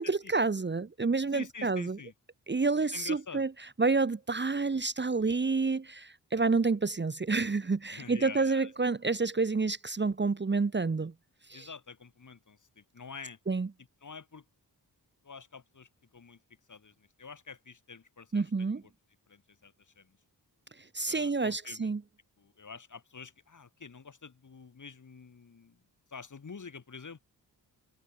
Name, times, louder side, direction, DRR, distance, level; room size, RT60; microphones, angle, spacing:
voice 1, 0.0-2.0 2.5-3.5 3.8-11.1 11.5-11.7 13.5-13.7 18.3-18.8 20.9-22.0, right 4 dB, 30° right, 1.1 m, -29 dB
voice 2, 1.3-2.1 2.9-3.5 7.9-8.7 11.5-13.4 14.0-14.5 15.2-16.4 16.7-18.9 19.3-20.2 21.1-21.9 22.4-25.8 26.1-27.2, left 5 dB, 50° left, 4.2 m, -47 dB
wide cardioid pair, 140°, 39 cm